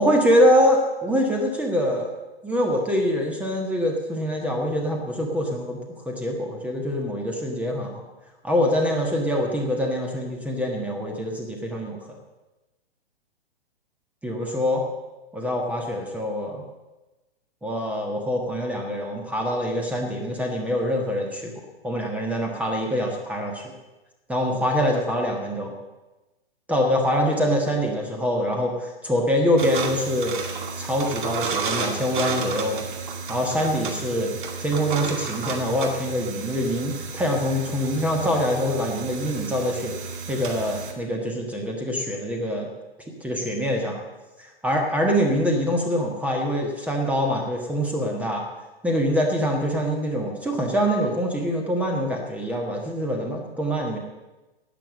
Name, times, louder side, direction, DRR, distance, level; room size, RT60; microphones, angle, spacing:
voice 1, 0.0-2.1 2.4-5.8 6.0-8.0 8.4-12.0 14.2-14.9 15.3-16.6 17.6-21.5 21.8-23.6 24.3-25.7 26.7-30.4 30.8-32.8 33.3-40.0 40.3-42.7 43.2-44.0 44.4-48.4 48.8-54.0, equal, 5° right, 1 dB, 1.5 m, -24 dB
sound 1, 29.6-40.9, right 5 dB, 50° right, 2.1 m, -32 dB
12.0 x 9.1 x 7.4 m, 1.1 s
figure-of-eight pair, 115°, 31 cm